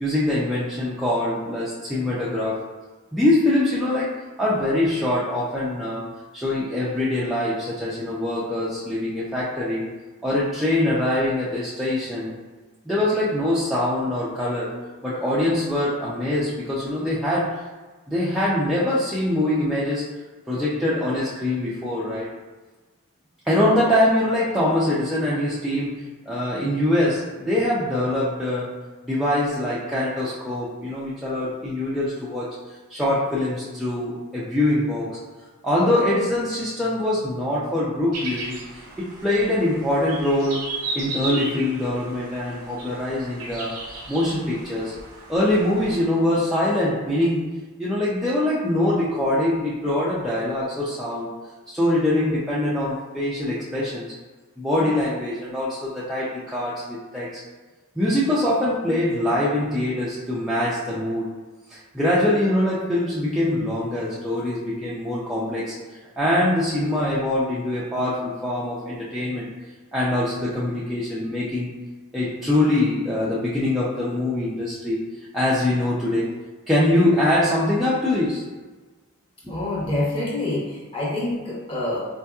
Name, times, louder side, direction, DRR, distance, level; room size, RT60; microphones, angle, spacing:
voice 1, 0.0-2.6 3.1-4.1 4.4-6.1 6.3-9.9 10.2-12.3 12.8-14.8 15.0-17.6 18.1-20.0 20.5-22.3 23.4-28.7 29.1-32.5 32.9-35.2 35.6-40.6 40.9-43.8 44.1-44.9 45.3-47.5 47.8-51.4 51.7-54.2 54.6-57.3 58.0-61.3 61.7-65.8 66.2-69.5 69.9-71.7 72.1-75.1 75.3-76.3 76.7-78.4 79.4-79.5, left 1 dB, ahead, -9 dB, 0.4 m, -23 dB
sound 1, 38.1-46.0, right 2 dB, 80° right, 0.8 m, -35 dB
voice 2, 79.5-82.0, left 1 dB, 25° left, -6 dB, 1.0 m, -26 dB
4.3 x 2.7 x 2.3 m, 1.3 s
head